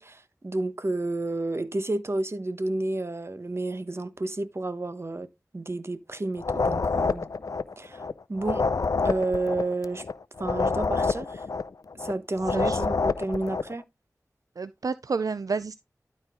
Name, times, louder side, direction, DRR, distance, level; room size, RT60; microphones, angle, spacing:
voice 1, 0.0-5.3 5.5-7.3 7.8-8.0 8.3-8.7 9.0-10.1 10.4-11.4 12.0-13.8, right 2 dB, 45° right, 1.1 m, -30 dB
sound 1, 6.4-8.1 8.4-12.1 12.4-13.7, left 4 dB, 70° left, 0.5 m, -27 dB
voice 2, 12.5-12.9 14.6-15.8, right 4 dB, 70° right, 0.4 m, -30 dB
12.0 x 4.5 x 3.6 m
wide cardioid pair, 40°, 6 cm